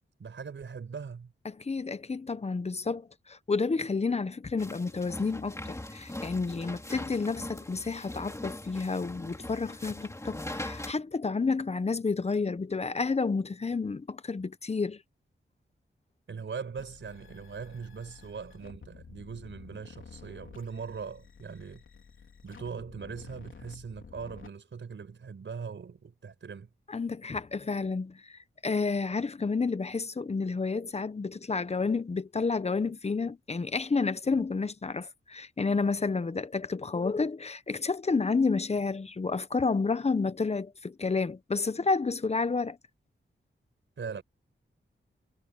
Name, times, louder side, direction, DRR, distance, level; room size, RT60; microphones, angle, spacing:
voice 1, 0.2-1.3 16.3-21.8 22.4-26.7 44.0-44.2, right 5 dB, 75° right, 4.9 m, -40 dB
voice 2, 1.5-15.0 26.9-42.8, left 4 dB, 35° left, 0.8 m, -30 dB
sound 1, 4.6-10.9, left 1 dB, 15° left, 3.1 m, -41 dB
sound 2, 16.8-24.5, left 6 dB, 85° left, 3.6 m, -51 dB
wide cardioid pair, 110°, 20 cm